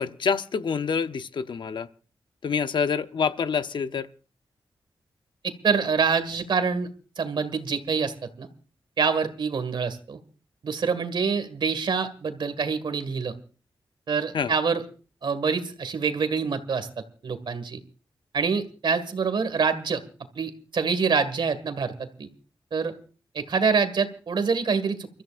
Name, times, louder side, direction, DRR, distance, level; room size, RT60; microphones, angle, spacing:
voice 1, 0.0-1.9 2.4-4.1 14.3-14.5, left 6 dB, 60° left, 0.8 m, -27 dB
voice 2, 5.4-6.9 7.2-8.5 9.0-10.2 10.6-13.3 14.1-14.8 15.2-16.9 17.2-17.8 18.3-20.0 20.4-22.3 22.7-22.9 23.3-25.1, right 5 dB, 60° right, 1.9 m, -26 dB
29.0 x 14.0 x 2.5 m
wide cardioid pair, 155°, 9 cm